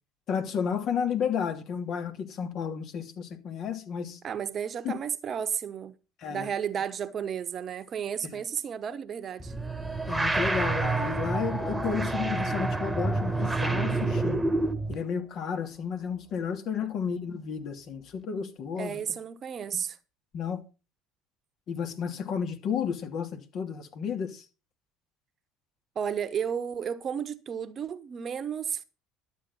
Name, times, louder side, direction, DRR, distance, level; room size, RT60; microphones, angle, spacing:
voice 1, 0.3-4.2 4.8-4.9 6.2-6.5 8.2-8.3 10.1-14.4 14.9-19.0 20.3-20.6 21.7-24.4, left 7 dB, 55° left, 2.7 m, -32 dB
voice 2, 4.2-5.9 6.3-9.5 16.8-17.0 18.8-20.0 25.9-28.8, right 8 dB, 40° right, 1.1 m, -33 dB
sound 1, 9.4-14.9, right 2 dB, 10° right, 1.6 m, -28 dB
12.0 x 8.1 x 5.6 m
hypercardioid pair, 75°, 0 cm